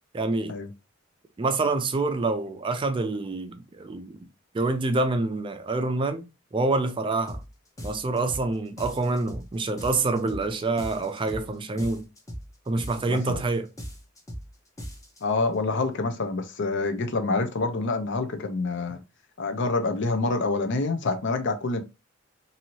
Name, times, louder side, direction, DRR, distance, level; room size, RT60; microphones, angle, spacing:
voice 1, 0.1-0.6 1.4-4.2 4.5-7.4 7.8-12.1 12.7-13.7, right 3 dB, 25° right, 0.4 m, -27 dB
sound 1, 7.3-7.5 7.8-8.5 8.8-9.5 9.8-10.5 10.8-11.5 11.8-12.5 12.8-13.5 13.8-14.5 14.8-15.2, equal, 15° left, 0.8 m, -38 dB
voice 2, 13.1-13.4 15.2-19.0 19.4-21.8, left 3 dB, 60° left, 0.6 m, -27 dB
2.7 x 2.7 x 2.9 m
head